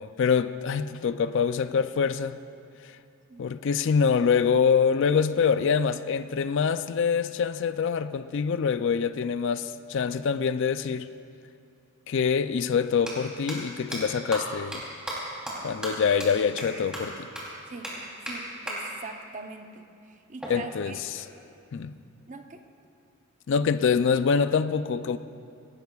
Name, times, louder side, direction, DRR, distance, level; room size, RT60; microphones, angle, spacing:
voice 1, 0.0-2.4 2.8-3.0 3.4-11.1 12.1-14.8 15.6-17.3 20.5-21.3 21.7-22.0 23.5-25.2, left 6 dB, 60° left, 13 dB, 0.4 m, -25 dB
sound 1, 11.8-11.9 12.9-13.1 13.5-13.6 13.9-14.0 14.3-14.4 14.7-14.8 15.1-15.2 15.5-15.6 15.8-15.9 16.2-16.3 16.6-16.7 16.9-17.0 17.3-17.4 17.8-17.9 18.3-18.4 18.7-18.8 20.4-21.4, right 1 dB, 5° right, 3.2 m, -35 dB
voice 2, 18.2-21.0 22.3-22.7, right 3 dB, 35° right, 6 dB, 0.7 m, -42 dB
18.5 x 17.5 x 2.4 m, 2.5 s
head